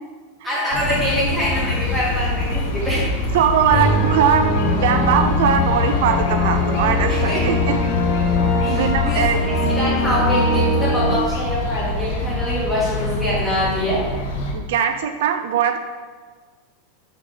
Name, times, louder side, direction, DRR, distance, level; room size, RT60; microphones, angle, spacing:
voice 1, 0.4-3.3 3.7-3.9 7.1-7.5 8.6-14.0, equal, ahead, -9 dB, 2.0 m, -24 dB
sound 1, 0.7-14.5, left 3 dB, 70° left, 1.2 m, -24 dB
voice 2, 3.3-7.8 8.7-9.4 14.5-15.8, right 8 dB, 65° right, 7 dB, 0.4 m, -20 dB
sound 2, 3.7-11.2, left 1 dB, 35° left, 0.9 m, -22 dB
6.1 x 3.8 x 4.9 m, 1.4 s
supercardioid pair, 165°, 0 cm